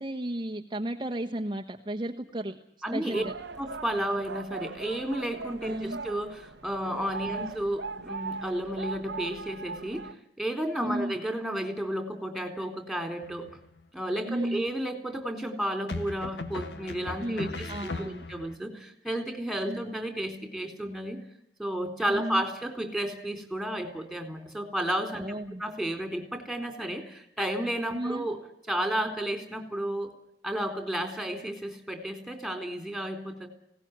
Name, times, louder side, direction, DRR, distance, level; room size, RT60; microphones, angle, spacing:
voice 1, 0.0-2.6 2.9-3.3 5.6-6.0 7.3-7.5 10.8-11.1 14.2-14.6 17.2-18.3 19.7-19.8 22.1-22.4 25.1-25.6 27.9-28.3, right 1 dB, 25° right, 2 dB, 1.1 m, -34 dB
voice 2, 2.8-3.2 3.6-13.5 13.9-21.2 21.6-25.2 25.6-28.4 28.7-30.1 30.4-33.5, right 1 dB, ahead, 5 dB, 3.9 m, -32 dB
sound 1, 3.1-10.1, right 4 dB, 80° right, 1.0 m, -39 dB
sound 2, 13.2-13.8 15.9-18.6, left 3 dB, 75° left, 1.5 m, -38 dB
19.5 x 18.0 x 9.5 m, 0.74 s
head